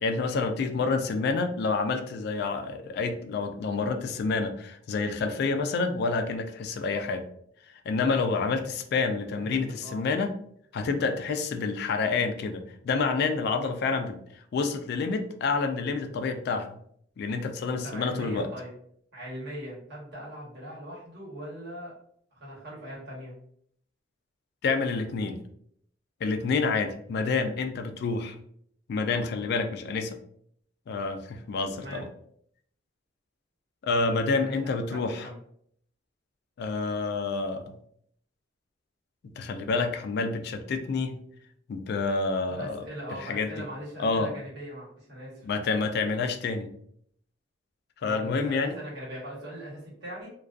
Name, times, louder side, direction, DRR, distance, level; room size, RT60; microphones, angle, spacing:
voice 1, 0.0-7.2 7.9-10.3 10.7-16.8 17.2-18.5 24.6-25.4 26.2-28.4 28.9-30.2 30.9-32.1 33.8-35.3 36.6-37.8 39.4-41.2 41.7-42.9 43.2-43.5 44.0-44.3 45.4-46.7 48.0-48.8, left 4 dB, 60° left, 7 dB, 0.3 m, -28 dB
voice 2, 9.4-10.0 17.8-18.7 19.1-22.0 22.3-23.4 31.8-32.0 34.4-35.4 42.5-45.5 48.0-50.3, equal, 60° right, -5 dB, 1.1 m, -40 dB
2.3 x 2.2 x 2.4 m, 0.66 s
head